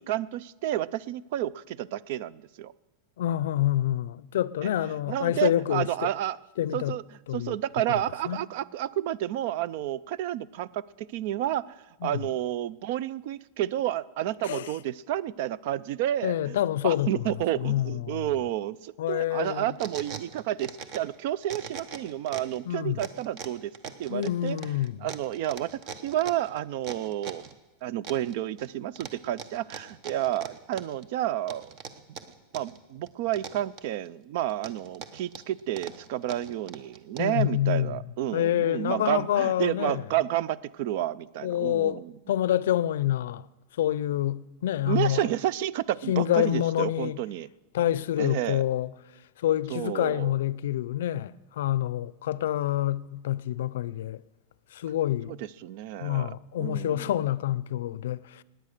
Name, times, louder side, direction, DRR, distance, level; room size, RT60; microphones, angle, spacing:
voice 1, 0.0-2.7 4.6-4.7 5.1-6.4 6.7-7.0 7.3-23.7 24.0-24.6 25.0-25.7 26.0-27.4 27.8-31.7 32.1-32.2 32.5-42.1 44.9-47.5 48.2-48.6 49.7-50.3 55.3-57.1, right 12 dB, 50° right, 0.4 m, -30 dB
voice 2, 3.2-6.1 6.6-7.0 7.3-7.6 8.3-8.4 12.0-12.1 14.4-14.7 16.2-17.2 17.6-18.3 19.0-19.7 22.7-23.1 24.1-25.1 37.2-38.0 38.3-40.0 41.4-42.0 42.3-43.5 43.8-45.3 46.1-47.2 47.7-48.9 49.4-54.2 54.7-55.4 56.0-58.4, left 12 dB, 85° left, 0.5 m, -27 dB
sound 1, 19.4-21.2 21.4-22.6 23.0-27.5 28.0-28.7 29.0-31.1 31.5-32.8 33.1-34.1 34.5-37.4, right 6 dB, 35° right, 0.9 m, -41 dB
19.0 x 9.2 x 6.6 m
supercardioid pair, 165°, 0 cm